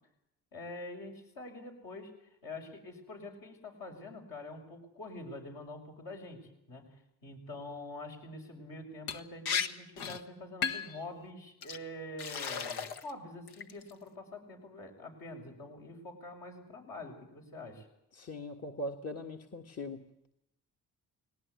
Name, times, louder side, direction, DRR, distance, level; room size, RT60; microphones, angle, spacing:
voice 1, 0.5-2.1 2.4-17.9, left 2 dB, 65° left, 1 dB, 6.9 m, -46 dB
Liquid, 9.1-9.2 9.4-9.7 10.0-10.2 10.6-11.0 11.6-11.8 12.2-13.1 13.5-13.9, left 6 dB, 80° left, 1.5 m, -34 dB
voice 2, 18.1-20.0, left 1 dB, 40° left, 3 dB, 1.8 m, -40 dB
19.5 x 18.5 x 9.7 m, 0.82 s
supercardioid pair, 70°, 38 cm